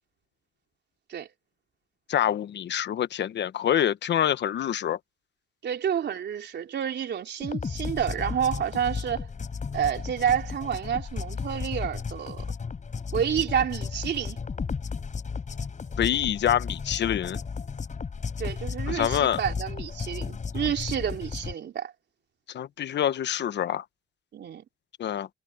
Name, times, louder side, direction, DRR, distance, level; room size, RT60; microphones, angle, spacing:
voice 1, 2.1-5.0 16.0-17.4 18.9-19.4 22.5-23.8 25.0-25.3, left 10 dB, 65° left, 1.2 m, -26 dB
voice 2, 5.6-9.3 9.7-12.5 13.1-14.4 18.4-21.9 24.3-24.7, right 8 dB, 60° right, 3.7 m, -29 dB
sound 1, 7.4-21.5, left 5 dB, 40° left, 6.4 m, -34 dB
cardioid pair, 90°, 20 cm